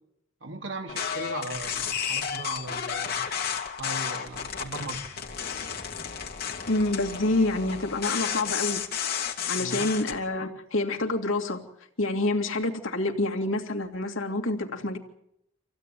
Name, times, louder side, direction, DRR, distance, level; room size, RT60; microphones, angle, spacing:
voice 1, 0.4-3.3 3.8-5.0 9.6-9.9, right 2 dB, 70° right, 2.7 m, -38 dB
sound 1, 0.9-10.1, left 8 dB, 50° left, 2.9 m, -32 dB
voice 2, 6.7-8.8 9.5-11.6 12.0-15.0, left 2 dB, 90° left, 2.6 m, -27 dB
26.5 x 16.0 x 9.3 m
head